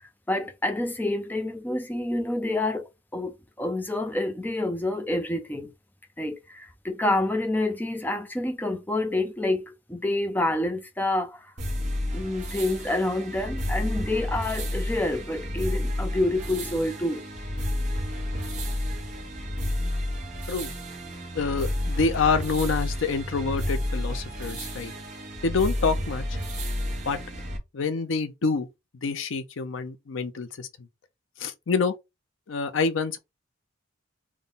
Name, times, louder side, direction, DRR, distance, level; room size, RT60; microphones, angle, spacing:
voice 1, 0.0-5.7 6.2-11.5 12.1-17.2, left 1 dB, 10° left, 0.5 m, -28 dB
sound 1, 11.6-27.6, left 1 dB, 35° right, 1.2 m, -31 dB
voice 2, 21.3-24.9 25.4-26.2 27.1-27.2 27.7-28.7 29.0-30.7 31.4-31.9 32.5-33.2, left 4 dB, 75° left, 0.5 m, -27 dB
3.6 x 2.2 x 3.8 m
head